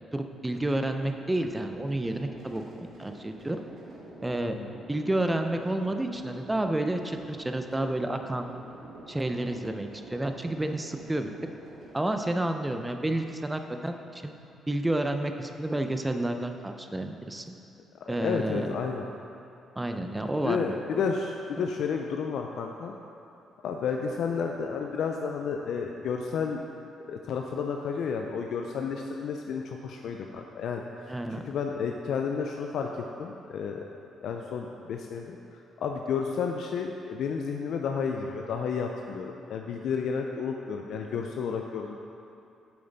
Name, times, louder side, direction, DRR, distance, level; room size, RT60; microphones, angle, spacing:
voice 1, 0.1-3.6 4.2-4.6 4.9-8.5 9.1-11.3 11.9-14.3 14.7-17.4 18.1-18.8 19.8-21.0 31.1-31.4, right 1 dB, 15° right, 6 dB, 0.5 m, -30 dB
sound 1, 0.9-12.2, right 1 dB, 60° right, 1.6 m, -48 dB
voice 2, 18.1-19.1 20.4-22.9 23.6-26.6 27.1-30.8 31.5-33.8 34.2-42.0, left 6 dB, 70° left, 2 dB, 0.4 m, -31 dB
7.8 x 6.9 x 4.0 m, 2.7 s
cardioid pair, 90°, 0 cm